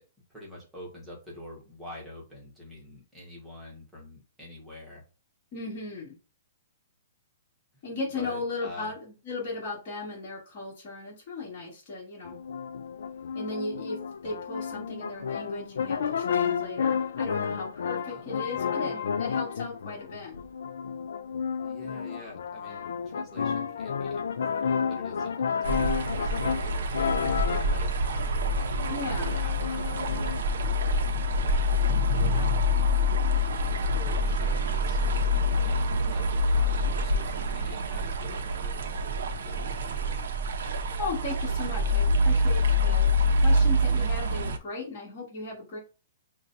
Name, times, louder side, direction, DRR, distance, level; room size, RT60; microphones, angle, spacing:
voice 1, 0.3-5.0 7.7-7.8 8.1-8.9 18.0-19.1 21.6-30.7 32.3-32.7 33.3-35.0 35.3-40.2, left 1 dB, 5° right, -4 dB, 1.2 m, -47 dB
voice 2, 5.5-6.2 7.8-12.4 13.3-14.0 14.2-20.3 28.9-29.3 32.1-32.5 41.0-45.8, left 3 dB, 35° left, -6 dB, 1.7 m, -36 dB
sound 1, 12.3-30.4, left 6 dB, 80° left, 0.4 m, -31 dB
sound 2, 25.6-44.6, left 1 dB, 70° right, 0.6 m, -26 dB
5.8 x 2.3 x 2.6 m, 0.33 s
hypercardioid pair, 170°, 0 cm